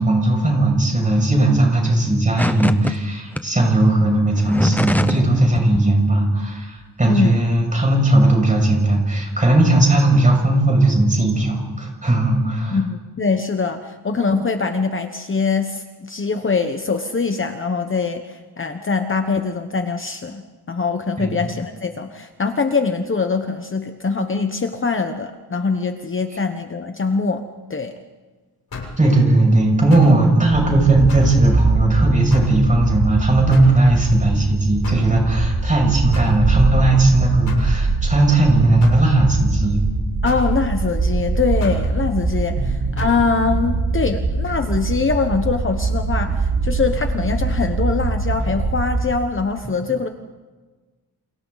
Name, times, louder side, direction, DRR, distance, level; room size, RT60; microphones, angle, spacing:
voice 1, 0.0-12.8 21.2-21.3 29.0-39.8 42.6-42.7, right 2 dB, 20° right, 0 dB, 6.5 m, -17 dB
sound 1, 2.4-2.9 3.3-3.4 4.3-5.3 5.6-5.8, left 1 dB, 5° left, 0.8 m, -22 dB
voice 2, 7.1-7.4 12.7-27.9 40.2-50.1, left 4 dB, 35° left, 6 dB, 1.1 m, -23 dB
sound 2, 28.7-29.0 29.9-30.2 31.1-31.4 32.3-32.6 33.5-33.8 34.8-35.1 36.1-36.4 37.5-37.7 38.8-39.1 40.2-40.5 41.6-41.9 43.0-43.2, left 4 dB, 80° left, 7.2 m, -31 dB
sound 3, 30.5-49.1, right 3 dB, 65° right, 4.7 m, -22 dB
30.0 x 28.5 x 4.1 m, 1.3 s
wide cardioid pair, 160°, 38 cm